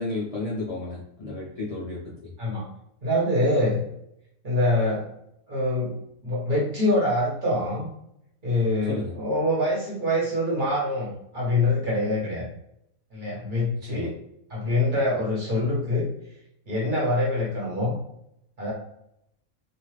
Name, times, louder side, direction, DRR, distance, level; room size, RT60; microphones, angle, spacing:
voice 1, 0.0-2.3 8.9-9.1 13.8-14.1, left 2 dB, 45° left, -7 dB, 0.4 m, -32 dB
voice 2, 3.0-3.8 4.4-5.0 5.5-6.0 6.2-7.9 8.4-12.5 13.1-14.1 14.5-16.1 16.7-17.9 18.6-18.7, left 1 dB, 40° right, -5 dB, 1.1 m, -25 dB
2.5 x 2.4 x 3.2 m, 0.78 s
omnidirectional pair, 1.5 m